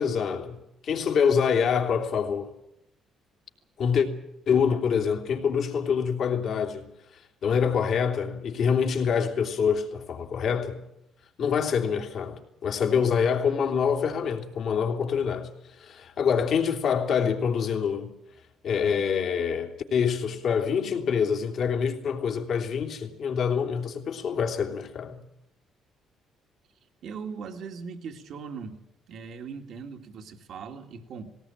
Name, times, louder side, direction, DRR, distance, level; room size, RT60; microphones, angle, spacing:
voice 1, 0.0-2.5 3.8-4.1 4.5-10.8 11.4-18.1 18.6-25.2, left 6 dB, 65° left, 3.1 m, -26 dB
voice 2, 27.0-28.8 29.1-31.3, right 5 dB, 65° right, 2.1 m, -39 dB
18.5 x 18.5 x 8.9 m
supercardioid pair, 75°, 0 cm